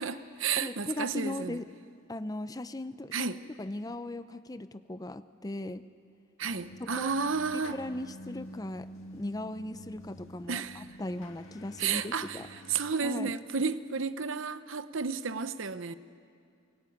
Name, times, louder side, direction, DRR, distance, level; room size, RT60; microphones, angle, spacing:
voice 1, 0.0-1.6 3.1-3.4 6.4-7.8 10.5-10.8 11.8-12.4 12.7-15.9, right 5 dB, 70° right, 0.8 m, -32 dB
voice 2, 0.6-1.7 2.1-3.3 3.6-5.8 6.8-7.1 7.5-8.9 9.1-12.5 13.0-13.3, left 1 dB, 20° left, 0.5 m, -38 dB
sound 1, 6.4-12.9, equal, 80° left, 2.1 m, -48 dB
24.0 x 21.0 x 9.3 m
head